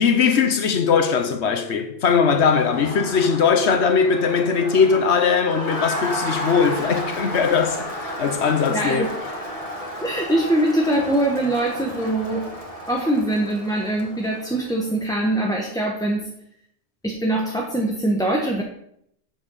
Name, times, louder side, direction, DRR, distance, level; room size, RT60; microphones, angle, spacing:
voice 1, 0.0-9.1, left 6 dB, 70° left, 1.2 m, -20 dB
Crowd, 2.3-14.8, equal, 30° left, 1.8 m, -32 dB
voice 2, 8.7-9.1 10.0-12.5 12.9-16.3 17.0-18.6, right 1 dB, 5° left, 0.9 m, -23 dB
7.4 x 7.2 x 5.5 m
omnidirectional pair, 1.2 m